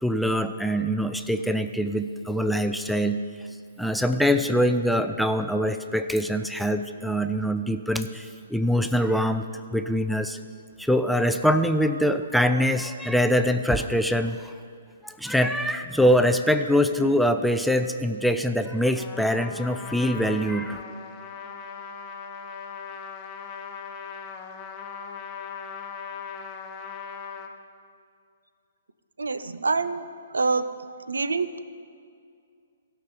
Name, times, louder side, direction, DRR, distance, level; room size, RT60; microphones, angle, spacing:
voice 1, 0.0-3.2 3.8-9.4 9.7-10.4 10.8-14.5 15.0-20.8, equal, ahead, 7 dB, 0.4 m, -24 dB
Trumpet, 18.9-27.5, left 6 dB, 25° left, 1.0 m, -39 dB
voice 2, 29.2-30.0 30.3-30.7 31.1-31.6, right 4 dB, 70° right, 13 dB, 0.6 m, -25 dB
16.0 x 5.8 x 6.9 m, 2.3 s
figure-of-eight pair, 125°, 0 cm